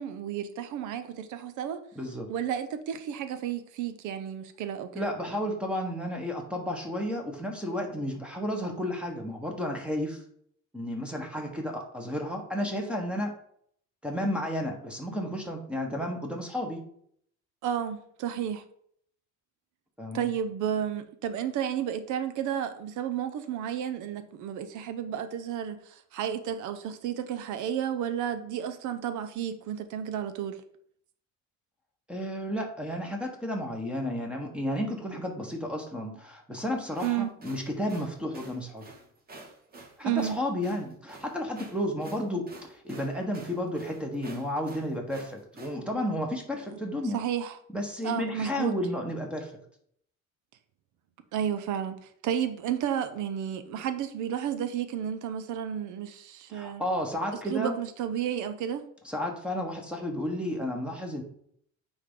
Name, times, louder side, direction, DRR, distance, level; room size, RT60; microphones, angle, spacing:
voice 1, 0.0-1.8 2.3-5.1 17.6-18.6 20.1-30.6 37.0-37.3 40.0-40.4 47.1-47.5 48.0-48.7 51.3-56.8 57.5-58.9, right 9 dB, 75° right, 10 dB, 0.7 m, -32 dB
voice 2, 1.9-2.3 4.9-10.2 10.7-13.4 14.0-16.8 20.0-20.3 32.1-38.8 40.0-47.2 47.7-49.5 56.5-57.8 59.0-61.2, left 1 dB, 5° right, 1 dB, 1.2 m, -32 dB
sound 1, 36.8-45.8, right 2 dB, 30° right, 1.3 m, -49 dB
9.3 x 3.5 x 3.7 m, 0.65 s
cardioid pair, 145°, 30 cm